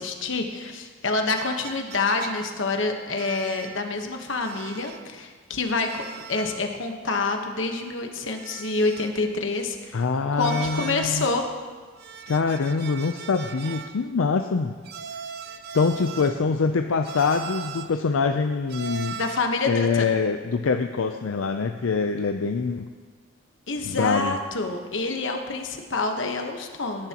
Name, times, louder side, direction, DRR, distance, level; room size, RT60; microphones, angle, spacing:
voice 1, 0.0-10.0 10.3-11.5 19.1-20.1 23.7-27.1, left 3 dB, 65° left, 4 dB, 1.1 m, -27 dB
sound 1, 1.4-2.7 3.2-3.9 4.4-5.1 5.8-6.7 7.0-7.1 8.3-9.3 10.4-11.2 12.0-14.0 14.9-16.5 17.1-18.0 18.7-19.6, right 7 dB, 50° right, 0.5 m, -39 dB
voice 2, 9.9-11.2 12.3-14.8 15.7-19.2 19.7-22.9 23.9-24.4, left 4 dB, 85° left, 6 dB, 0.5 m, -24 dB
17.0 x 11.0 x 2.9 m, 1.5 s
head